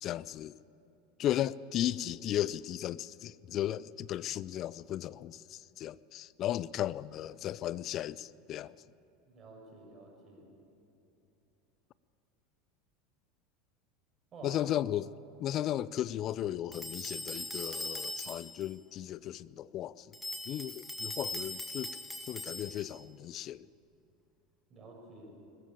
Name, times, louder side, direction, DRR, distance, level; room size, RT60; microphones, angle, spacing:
voice 1, 0.0-0.5 1.2-8.7 14.4-15.1 15.4-20.1 20.5-21.9 22.3-23.7, left 12 dB, 45° left, 0.4 m, -35 dB
voice 2, 9.3-10.5 14.3-14.6 24.7-25.4, right 3 dB, 35° right, 6.5 m, -50 dB
sound 1, 16.7-18.7 20.1-23.0, left 1 dB, 10° left, 2.2 m, -40 dB
20.5 x 14.5 x 8.7 m
figure-of-eight pair, 80°, 0 cm